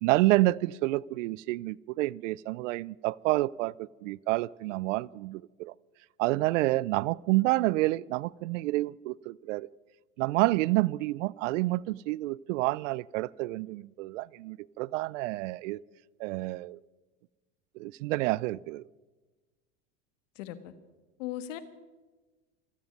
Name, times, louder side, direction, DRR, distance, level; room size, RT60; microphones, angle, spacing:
voice 1, 0.0-5.7 6.2-9.7 10.2-15.8 16.2-16.8 17.8-18.8, right 19 dB, 80° right, 0.5 m, -29 dB
voice 2, 20.4-20.7 21.2-21.6, left 12 dB, 75° left, 1.5 m, -37 dB
25.5 x 9.5 x 5.3 m
hypercardioid pair, 100°, 38 cm